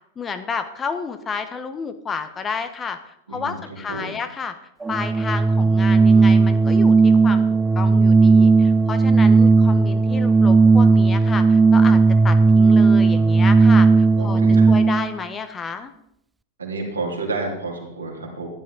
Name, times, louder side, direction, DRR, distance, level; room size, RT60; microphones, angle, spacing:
voice 1, 0.2-4.6 4.9-12.0 12.2-14.4 14.7-15.9, left 5 dB, 20° left, 9 dB, 1.1 m, -31 dB
voice 2, 3.3-4.2 14.2-14.7 16.6-18.5, right 3 dB, 75° right, -1 dB, 3.1 m, -30 dB
Organ, 4.8-15.1, right 4 dB, 10° right, 0.4 m, -15 dB
14.0 x 11.0 x 3.9 m, 0.74 s
figure-of-eight pair, 90°, 0 cm